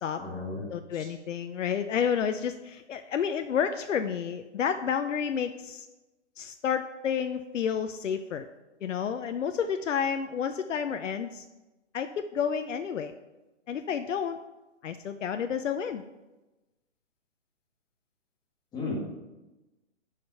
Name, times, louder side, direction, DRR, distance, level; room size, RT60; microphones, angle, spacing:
voice 1, 0.2-0.6 0.9-1.1 18.7-19.0, left 3 dB, 10° left, -3 dB, 1.6 m, -34 dB
voice 2, 0.7-5.9 6.4-8.5 8.8-11.4 11.9-13.1 13.7-14.4 14.8-16.0, left 7 dB, 85° left, 8 dB, 0.7 m, -30 dB
11.0 x 5.0 x 5.5 m, 1.1 s
hypercardioid pair, 160°, 36 cm